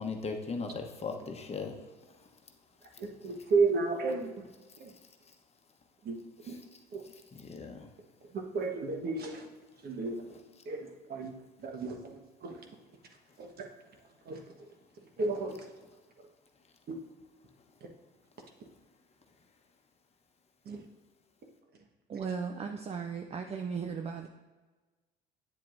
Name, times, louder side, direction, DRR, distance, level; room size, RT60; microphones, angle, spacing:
voice 1, 0.0-1.7 7.3-7.9, left 4 dB, 30° left, 4 dB, 1.0 m, -37 dB
voice 2, 3.0-4.5 4.8-4.9 6.0-6.2 6.5-6.6 6.9-7.0 8.3-9.5 9.8-10.4 10.6-11.3 11.6-12.6 13.4-13.7 14.2-14.4 15.2-15.5 16.9-17.0 20.6-20.8, right 4 dB, 45° right, 3 dB, 1.2 m, -32 dB
voice 3, 22.1-24.3, right 6 dB, 30° right, 5 dB, 0.5 m, -36 dB
8.7 x 7.4 x 2.6 m, 1.2 s
supercardioid pair, 85°, 21 cm